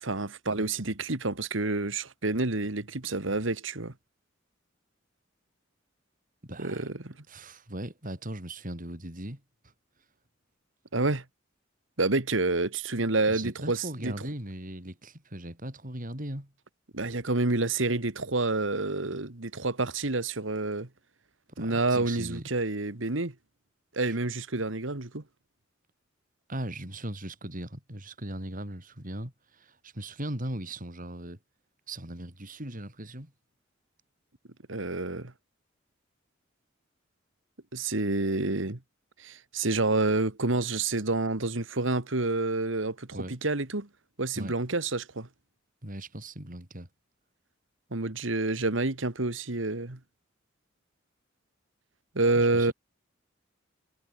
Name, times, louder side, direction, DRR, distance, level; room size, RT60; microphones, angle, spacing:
voice 1, 0.0-3.9 6.6-7.1 10.9-11.2 12.0-14.1 16.9-20.9 21.6-23.3 23.9-25.2 34.7-35.3 37.7-38.8 39.2-43.9 44.2-45.3 47.9-50.0 52.2-52.7, right 2 dB, 70° right, 2.0 m, -28 dB
voice 2, 6.4-6.9 7.3-9.4 13.3-16.5 21.6-22.5 24.0-24.1 26.5-31.4 31.9-33.3 43.1-43.3 44.4-44.5 45.8-46.9 52.4-52.7, right 1 dB, 45° right, 6.0 m, -38 dB
head